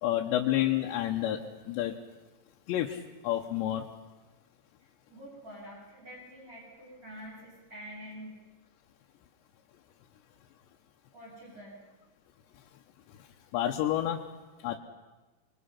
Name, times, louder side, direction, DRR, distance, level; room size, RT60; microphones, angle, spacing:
voice 1, 0.0-2.0 2.7-3.9 13.2-13.3 13.5-14.2 14.6-14.8, left 12 dB, 85° left, 1 dB, 3.3 m, -29 dB
voice 2, 5.1-8.4 11.1-11.8, equal, 20° right, -5 dB, 8.3 m, -46 dB
28.5 x 22.5 x 5.8 m, 1.2 s
omnidirectional pair, 5.0 m